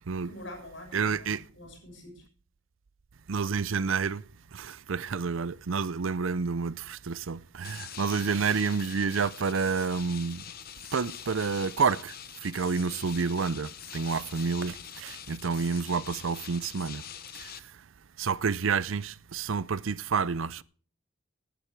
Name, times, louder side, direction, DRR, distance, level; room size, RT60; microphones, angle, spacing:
voice 1, 0.2-1.3 1.5-2.2 12.8-13.0, left 1 dB, 65° left, 6.5 m, -45 dB
voice 2, 0.9-1.4 3.3-4.2 4.5-10.4 10.9-12.1 12.4-17.0 17.4-17.5 18.2-20.6, right 5 dB, 75° right, 0.5 m, -29 dB
sound 1, 7.6-17.6, left 10 dB, 45° left, 0.8 m, -44 dB
16.0 x 11.5 x 4.6 m
head